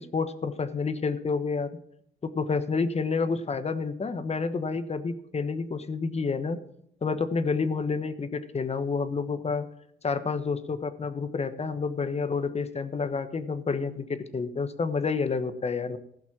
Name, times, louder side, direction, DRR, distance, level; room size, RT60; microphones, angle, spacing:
voice 1, 0.0-1.7 2.2-6.6 7.0-9.7 10.0-16.0, left 4 dB, 30° left, 11 dB, 1.2 m, -29 dB
15.5 x 6.0 x 7.3 m, 0.72 s
cardioid pair, 90°, 20 cm